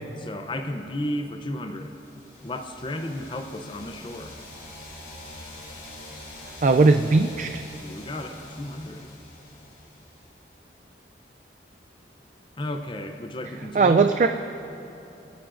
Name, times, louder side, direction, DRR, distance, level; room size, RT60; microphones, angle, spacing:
voice 1, 0.2-1.9 2.4-4.4 7.8-9.1 12.6-14.1, left 1 dB, 25° left, 6 dB, 0.6 m, -33 dB
sound 1, 1.8-10.5, left 1 dB, 50° left, 2.9 m, -45 dB
voice 2, 6.6-7.6 13.8-14.3, right 3 dB, 45° right, 7 dB, 0.3 m, -18 dB
20.5 x 13.5 x 2.6 m, 2.8 s
head